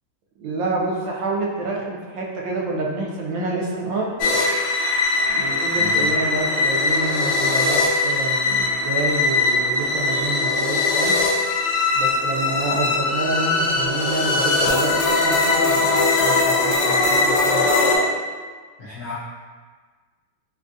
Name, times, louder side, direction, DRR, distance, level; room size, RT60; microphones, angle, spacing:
voice 1, 0.4-4.1 5.3-11.1 12.0-17.7, right 3 dB, 80° right, -2 dB, 1.3 m, -28 dB
sound 1, 4.2-18.0, left 3 dB, 90° left, 1.4 m, -20 dB
voice 2, 5.7-6.1 18.8-19.1, left 4 dB, 65° left, -11 dB, 0.8 m, -34 dB
3.6 x 2.4 x 2.6 m, 1.5 s
omnidirectional pair, 2.1 m